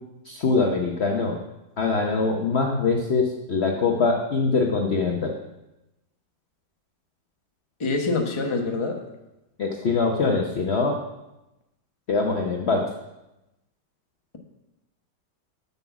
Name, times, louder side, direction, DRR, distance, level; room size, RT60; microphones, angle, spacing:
voice 1, 0.2-1.4 1.8-5.3 9.6-11.0 12.1-12.9, left 4 dB, 50° left, 1 dB, 0.8 m, -23 dB
voice 2, 7.8-9.0, left 3 dB, 20° left, 2 dB, 0.9 m, -25 dB
7.6 x 7.1 x 5.9 m, 0.96 s
omnidirectional pair, 1.9 m